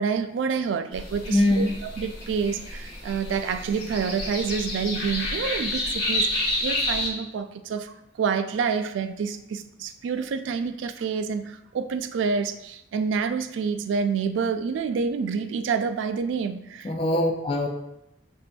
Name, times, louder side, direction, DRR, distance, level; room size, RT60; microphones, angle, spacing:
voice 1, 0.0-16.9, right 5 dB, 80° right, 9 dB, 0.3 m, -28 dB
sound 1, 0.9-7.1, left 1 dB, 60° left, 1.2 m, -29 dB
voice 2, 1.3-1.7 16.8-17.7, left 1 dB, 30° left, 2 dB, 0.4 m, -22 dB
6.5 x 2.5 x 2.2 m, 0.85 s
head